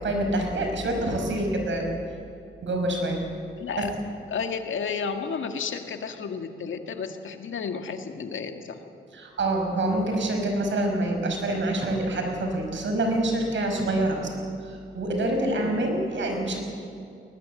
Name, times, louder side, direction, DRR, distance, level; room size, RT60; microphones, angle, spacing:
voice 1, 0.0-1.9 2.6-3.2 3.8-3.9 9.1-14.3 14.6-16.6, right 1 dB, 65° right, 3 dB, 5.5 m, -26 dB
voice 2, 3.6-3.9 4.3-8.8 15.6-15.8, left 5 dB, 70° left, 6 dB, 2.0 m, -32 dB
21.0 x 19.5 x 7.8 m, 2.5 s
cardioid pair, 75°, 21 cm